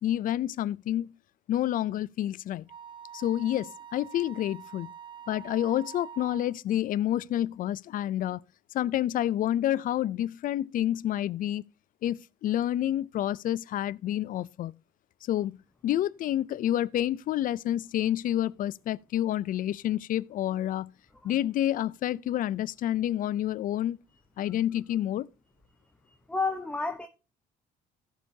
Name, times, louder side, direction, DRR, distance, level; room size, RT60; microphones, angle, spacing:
voice 1, 0.0-1.1 1.5-2.7 3.1-4.9 5.3-8.4 8.7-11.6 12.0-14.7 15.2-20.9 21.2-24.0 24.4-25.3, left 12 dB, 55° left, 0.4 m, -29 dB
Wind instrument woodwind instrument, 2.7-6.5, right 8 dB, 30° right, 0.9 m, -46 dB
voice 2, 26.3-27.1, left 3 dB, 5° left, 0.9 m, -30 dB
17.0 x 6.4 x 2.7 m
cardioid pair, 110°, 17 cm